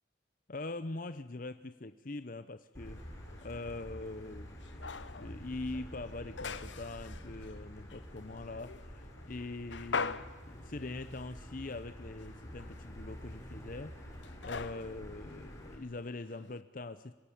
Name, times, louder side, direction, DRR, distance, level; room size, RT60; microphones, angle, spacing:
voice 1, 0.5-3.0 3.4-4.5 5.2-13.9 14.4-17.1, left 2 dB, 45° left, 11 dB, 0.8 m, -43 dB
Motor vehicle (road), 2.7-15.8, equal, 15° left, 4.4 m, -48 dB
sound 1, 2.9-16.6, left 5 dB, 80° left, 1.0 m, -45 dB
25.5 x 17.0 x 10.0 m, 1.3 s
head